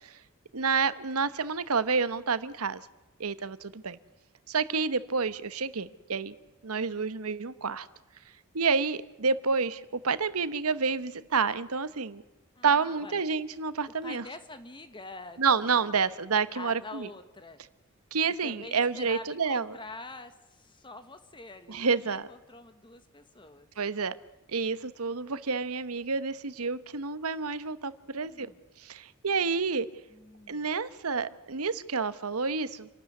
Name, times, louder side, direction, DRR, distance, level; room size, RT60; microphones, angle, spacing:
voice 1, 0.5-2.8 3.2-4.0 4.5-6.3 6.6-7.9 8.5-12.2 12.6-14.2 15.4-17.1 18.1-19.8 21.7-22.3 23.8-24.1 24.5-28.5 28.8-29.9 30.5-32.9, right 5 dB, 85° right, 15 dB, 1.1 m, -29 dB
voice 2, 12.6-13.2 14.0-16.1 16.5-17.6 18.4-23.7 28.0-28.6 30.1-30.7, left 3 dB, 20° left, 10 dB, 1.4 m, -46 dB
28.0 x 12.5 x 9.4 m, 1.1 s
head